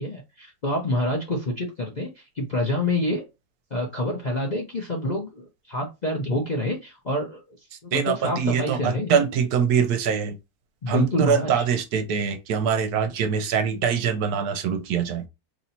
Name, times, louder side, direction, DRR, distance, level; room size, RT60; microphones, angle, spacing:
voice 1, 0.0-3.2 3.7-7.4 7.8-9.1 10.8-11.6, left 1 dB, 45° left, 0.5 m, -27 dB
voice 2, 7.9-10.4 10.9-15.2, right 7 dB, 75° right, 1.2 m, -23 dB
3.0 x 2.7 x 4.1 m
omnidirectional pair, 1.7 m